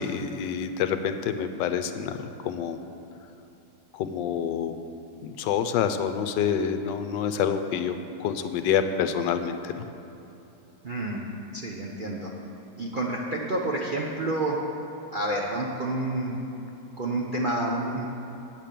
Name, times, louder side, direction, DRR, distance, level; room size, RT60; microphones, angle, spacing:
voice 1, 0.0-2.8 3.9-4.8 5.2-9.8, left 7 dB, 75° left, 9 dB, 1.2 m, -27 dB
voice 2, 10.8-11.2 11.5-12.3 12.8-14.6 15.1-16.4 17.0-18.1, right 2 dB, 75° right, -3 dB, 0.4 m, -29 dB
8.7 x 7.4 x 6.7 m, 2.8 s
omnidirectional pair, 2.1 m